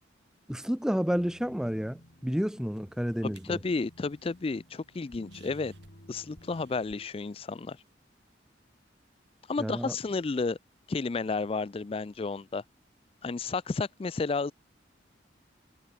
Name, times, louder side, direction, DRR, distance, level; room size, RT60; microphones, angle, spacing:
voice 1, 0.5-3.6 9.6-10.0, equal, 5° right, 0.7 m, -30 dB
sound 1, 1.1-7.1, equal, 75° left, 7.6 m, -54 dB
sound 2, 2.7-7.9, right 2 dB, 70° right, 6.9 m, -61 dB
voice 2, 3.2-5.7 6.1-7.8 9.5-10.6 10.9-12.6 13.2-14.5, left 4 dB, 30° left, 0.4 m, -32 dB
head